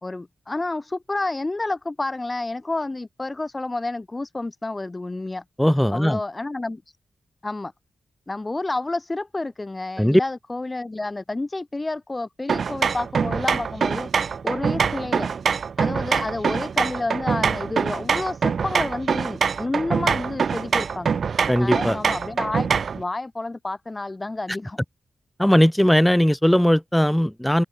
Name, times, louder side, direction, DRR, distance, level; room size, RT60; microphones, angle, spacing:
voice 1, 0.0-5.4 5.9-6.8 7.4-7.7 8.3-15.3 15.8-21.2 21.6-24.8, left 2 dB, 20° left, 4.2 m, -30 dB
voice 2, 5.6-6.2 10.0-10.2 21.5-22.0 25.4-27.6, equal, 5° left, 6.2 m, -18 dB
sound 1, 12.5-23.0, right 6 dB, 60° right, 1.5 m, -24 dB
wide cardioid pair, 105°, 0 cm